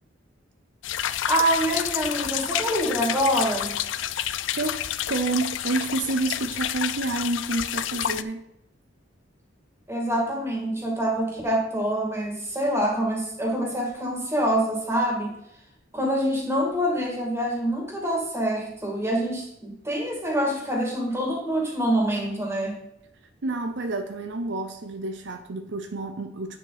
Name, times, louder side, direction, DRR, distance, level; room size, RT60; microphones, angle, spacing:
sound 1, 0.8-8.2, left 11 dB, 75° left, 0.4 m, -29 dB
voice 1, 1.3-3.8 9.9-15.3 15.9-22.8, right 1 dB, 15° right, -1 dB, 2.4 m, -25 dB
voice 2, 5.1-8.4 23.4-26.6, right 3 dB, 65° right, 7 dB, 0.7 m, -29 dB
8.9 x 6.7 x 4.1 m, 0.81 s
head